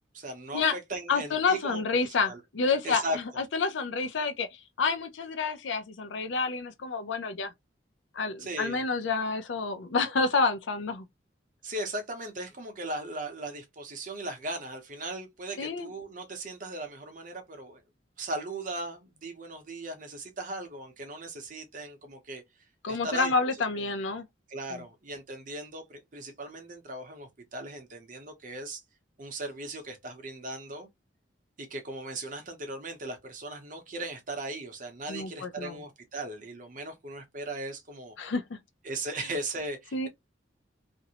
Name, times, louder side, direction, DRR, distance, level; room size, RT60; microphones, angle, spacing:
voice 1, 0.1-1.8 2.0-2.4 2.8-3.2 8.4-8.8 11.6-17.8 18.2-22.4 22.9-23.3 23.7-23.8 24.5-28.8 29.2-30.9 31.6-38.1 38.8-40.1, right 2 dB, 45° right, 0.7 m, -38 dB
voice 2, 1.1-3.0 3.4-7.5 8.1-11.1 15.6-15.9 22.8-24.3 24.7-24.8 35.1-35.8 38.2-38.6 39.9-40.1, left 4 dB, 75° left, 0.5 m, -29 dB
2.5 x 2.1 x 2.7 m
head